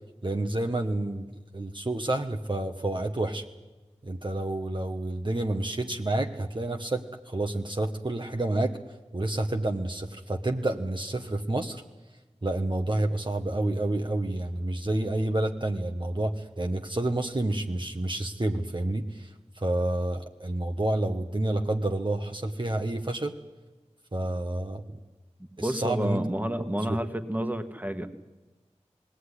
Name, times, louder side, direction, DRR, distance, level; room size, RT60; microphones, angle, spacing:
voice 1, 0.2-1.3 1.5-3.4 4.0-8.8 9.1-11.8 12.4-19.3 19.5-23.4 24.1-25.0 25.6-26.2 26.6-27.0, right 2 dB, 40° right, 4 dB, 1.3 m, -29 dB
voice 2, 25.6-28.1, equal, 15° right, 8 dB, 1.6 m, -30 dB
20.0 x 17.0 x 9.9 m, 1.1 s
wide cardioid pair, 40°, 12 cm